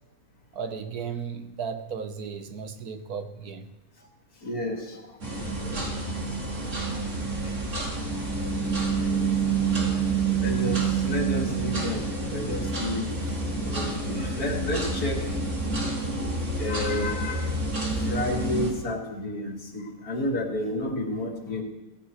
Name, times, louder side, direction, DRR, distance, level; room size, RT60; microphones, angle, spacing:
voice 1, 0.5-3.7 9.5-9.9, right 6 dB, 75° right, 8 dB, 1.5 m, -35 dB
voice 2, 4.4-5.1 5.6-5.7 7.4-7.5 10.4-13.1 13.6-15.3 16.1-17.5 18.1-21.6, left 1 dB, 65° left, 0 dB, 2.8 m, -31 dB
sound 1, 5.2-18.7, right 3 dB, 50° right, 2.9 m, -28 dB
17.5 x 15.5 x 3.2 m, 0.96 s
omnidirectional pair, 1.7 m